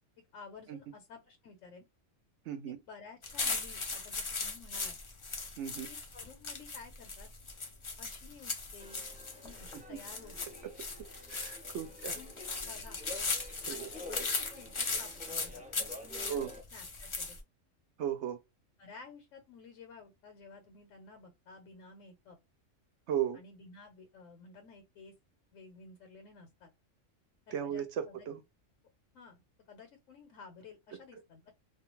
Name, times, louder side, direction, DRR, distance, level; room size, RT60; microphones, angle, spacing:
voice 1, 0.3-1.8 2.7-5.0 5.9-7.3 8.0-9.0 9.4-10.3 12.1-13.0 13.7-16.5 16.7-17.4 18.8-22.4 23.3-25.1 25.5-26.7 27.5-28.3 29.1-31.5, left 4 dB, 80° left, 1.1 m, -53 dB
voice 2, 2.5-2.8 5.6-5.9 9.7-10.0 10.6-10.7 11.3-12.2 13.7-13.9 16.3-16.5 18.0-18.4 23.1-23.4 27.5-28.4, right 9 dB, 70° right, 0.8 m, -36 dB
sound 1, 3.2-17.4, left 4 dB, 45° left, 0.4 m, -38 dB
sound 2, 8.8-16.6, left 2 dB, 10° right, 0.5 m, -50 dB
2.4 x 2.3 x 2.9 m
omnidirectional pair, 1.3 m